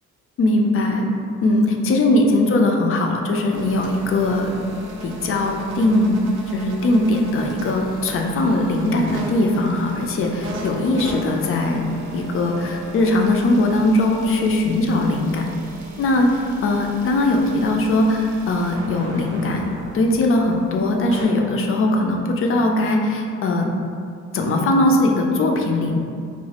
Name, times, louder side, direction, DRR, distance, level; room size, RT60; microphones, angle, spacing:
voice 1, 0.4-1.0 1.4-4.5 5.0-6.2 6.5-11.9 12.1-15.5 16.0-19.6 19.9-23.7 24.3-26.0, left 2 dB, 45° left, 2 dB, 0.4 m, -20 dB
sound 1, 3.5-21.2, right 2 dB, 85° right, 0.5 m, -36 dB
3.0 x 2.1 x 2.8 m, 2.3 s
cardioid pair, 90°, 30 cm